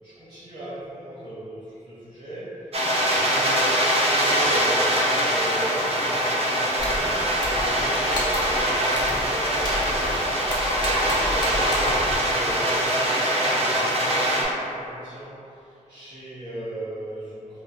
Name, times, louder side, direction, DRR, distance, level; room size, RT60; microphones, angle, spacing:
voice 1, 0.0-17.6, right 1 dB, 30° right, -17 dB, 1.3 m, -37 dB
sound 1, 2.7-14.4, equal, 45° right, 0.6 m, -23 dB
sound 2, 6.8-7.1 7.4-7.8 8.1-8.6 8.9-9.2 9.6-10.2 10.5-12.1, left 1 dB, 30° left, 0.7 m, -29 dB
4.3 x 2.6 x 2.4 m, 2.7 s
wide cardioid pair, 120°, 14 cm